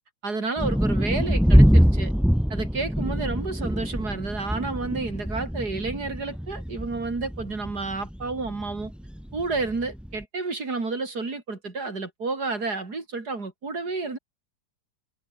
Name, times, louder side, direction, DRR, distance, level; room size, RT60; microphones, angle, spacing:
voice 1, 0.2-2.1 2.5-8.9 9.3-14.2, right 3 dB, 75° right, 4.3 m, -30 dB
sound 1, 0.6-10.2, equal, ahead, 0.8 m, -24 dB
omnidirectional pair, 1.7 m